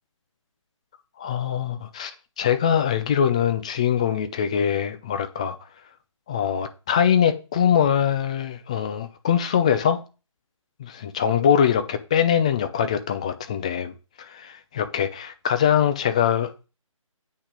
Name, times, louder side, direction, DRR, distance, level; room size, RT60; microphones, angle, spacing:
voice 1, 1.2-2.1 2.4-5.6 6.3-10.0 10.8-16.7, left 8 dB, 10° left, 0.4 m, -23 dB
8.5 x 6.1 x 5.1 m
figure-of-eight pair, 150°, 17 cm